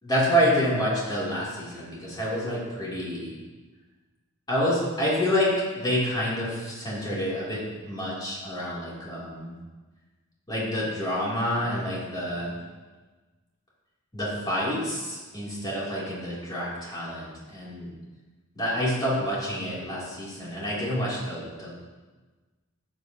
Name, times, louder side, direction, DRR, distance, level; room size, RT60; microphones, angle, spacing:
voice 1, 0.0-3.3 4.5-9.5 10.5-12.6 14.1-17.9 18.5-21.7, equal, 20° left, -7 dB, 3.3 m, -28 dB
12.5 x 8.8 x 3.0 m, 1.3 s
head